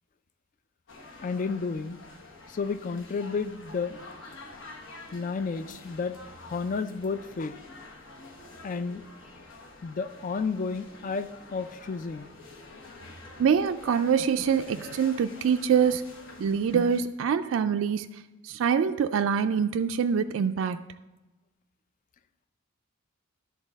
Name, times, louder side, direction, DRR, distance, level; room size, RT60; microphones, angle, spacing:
sound 1, 0.9-17.0, left 2 dB, 65° left, 1.2 m, -48 dB
voice 1, 1.2-2.1 2.5-4.0 5.1-6.2 6.5-7.6 8.6-9.0 9.8-12.3, left 4 dB, 40° left, 11 dB, 0.3 m, -31 dB
voice 2, 13.4-16.1 16.4-20.8, right 7 dB, 65° right, 8 dB, 0.3 m, -25 dB
11.0 x 4.0 x 6.3 m, 1.1 s
head